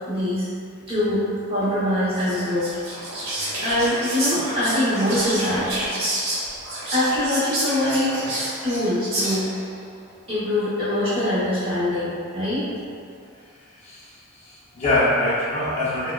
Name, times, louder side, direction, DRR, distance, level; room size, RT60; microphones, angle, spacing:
voice 1, 0.1-0.5 0.9-2.8 3.2-5.7 6.9-8.3 8.6-9.5 10.3-12.6, left 1 dB, 25° right, -11 dB, 0.8 m, -23 dB
Whispering, 2.1-9.7, right 1 dB, 60° right, 1.0 m, -29 dB
voice 2, 13.8-16.1, left 1 dB, 30° left, -8 dB, 0.4 m, -24 dB
4.5 x 2.1 x 2.2 m, 2.3 s
head